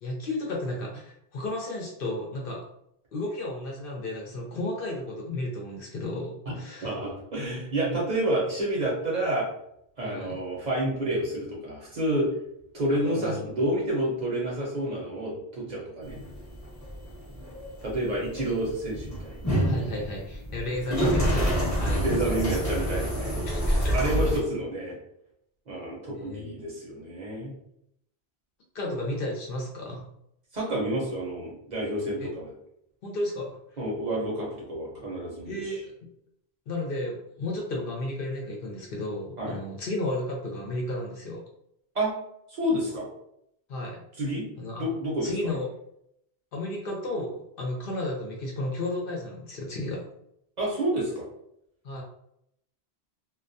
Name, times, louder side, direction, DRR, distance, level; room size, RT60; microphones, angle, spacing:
voice 1, 0.0-2.6 3.1-7.0 7.9-8.0 10.0-10.4 12.9-13.5 19.7-22.5 23.4-24.0 26.1-26.4 28.7-30.1 32.2-32.3 33.0-33.5 35.5-35.8 36.7-41.4 43.7-44.0 44.6-44.9 45.2-45.7 46.5-50.1 51.8-52.0, left 1 dB, 65° left, -1 dB, 0.7 m, -33 dB
voice 2, 6.8-9.5 10.0-12.3 12.7-16.2 17.8-19.3 22.0-23.4 23.9-25.0 25.7-27.5 30.5-32.5 33.8-35.7 39.4-39.6 41.9-42.1 42.5-43.1 44.2-44.5 44.8-45.5 50.6-51.3, right 1 dB, 45° right, -4 dB, 0.7 m, -29 dB
sound 1, 16.0-24.4, equal, 20° left, 0.5 m, -28 dB
2.2 x 2.1 x 2.5 m, 0.75 s
omnidirectional pair, 1.1 m